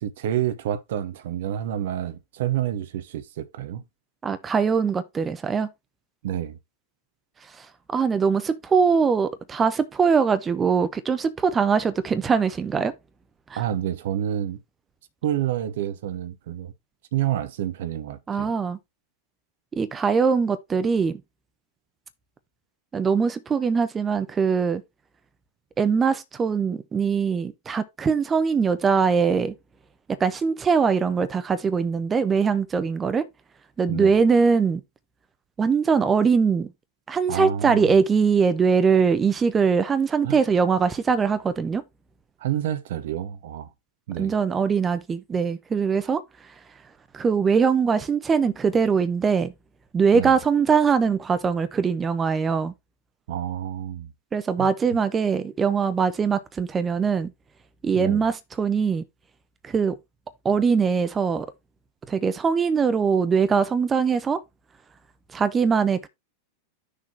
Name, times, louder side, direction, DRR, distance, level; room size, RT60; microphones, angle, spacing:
voice 1, 0.0-3.8 6.2-6.6 13.6-14.6 15.2-16.7 17.1-18.5 33.9-34.1 37.3-37.9 40.2-40.4 42.4-43.7 44.1-44.3 50.1-50.4 53.3-54.1 54.6-54.7 57.9-58.2, right 11 dB, 55° right, 0.8 m, -28 dB
voice 2, 4.2-5.7 7.6-7.7 7.9-12.9 13.5-13.6 18.3-18.8 19.7-21.2 22.9-24.8 25.8-29.5 30.1-33.3 33.8-34.8 35.6-36.7 37.1-41.8 44.2-46.2 47.1-49.5 49.9-52.7 54.3-57.3 57.8-59.1 59.6-60.0 60.4-61.5 62.1-64.4 65.3-66.1, right 5 dB, 20° right, 0.9 m, -22 dB
6.5 x 3.7 x 5.8 m
figure-of-eight pair, 90°, 0 cm